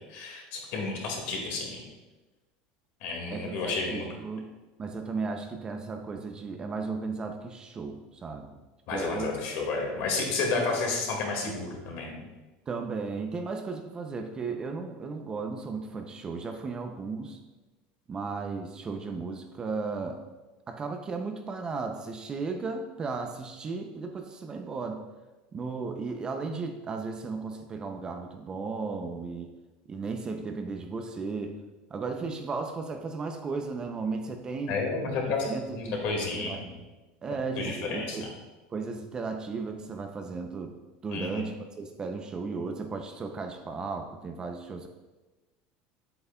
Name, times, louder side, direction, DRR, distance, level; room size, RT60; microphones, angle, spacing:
voice 1, 0.1-1.8 3.0-4.1 8.9-12.2 34.7-36.8 37.6-38.3 41.1-41.4, left 3 dB, 55° left, 0 dB, 1.9 m, -31 dB
voice 2, 3.3-4.5 4.8-8.6 8.9-9.3 10.6-10.7 12.7-17.4 18.1-20.2 20.7-25.0 25.5-29.5 29.9-31.6 31.9-34.8 35.4-36.0 36.3-36.6 37.2-38.3 38.7-40.7 41.0-44.9, right 4 dB, 20° right, 5 dB, 0.4 m, -35 dB
7.9 x 7.9 x 2.2 m, 1.2 s
cardioid pair, 160°, 4 cm